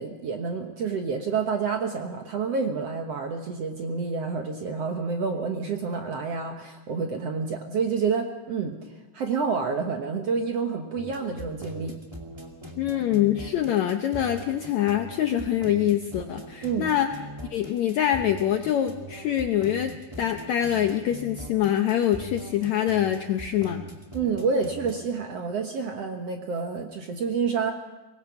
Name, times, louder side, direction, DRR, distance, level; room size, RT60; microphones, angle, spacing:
voice 1, 0.0-12.0 16.6-16.9 24.1-27.7, right 5 dB, 60° right, 4 dB, 1.7 m, -28 dB
sound 1, 11.0-25.0, right 1 dB, 10° right, 1.4 m, -41 dB
voice 2, 12.8-17.1 17.5-19.9 20.2-23.8, left 11 dB, 75° left, 6 dB, 1.6 m, -25 dB
24.0 x 19.5 x 5.9 m, 1.1 s
omnidirectional pair, 4.3 m